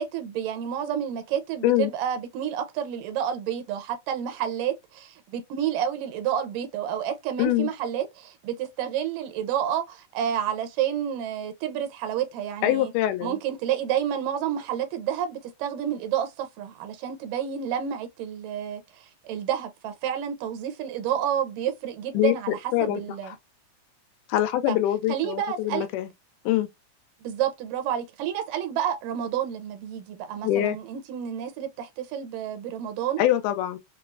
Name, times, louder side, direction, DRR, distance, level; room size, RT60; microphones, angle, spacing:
voice 1, 0.0-12.9 13.2-23.4 24.7-24.8 25.1-25.9 27.2-33.2, right 9 dB, 85° right, 2.3 m, -30 dB
voice 2, 7.4-7.7 12.6-13.4 22.1-22.3 22.7-23.0 23.3-23.4 24.3-26.1 26.5-26.7 30.4-30.8 33.2-33.8, left 13 dB, 80° left, 2.0 m, -24 dB
5.7 x 2.0 x 2.4 m
omnidirectional pair, 3.8 m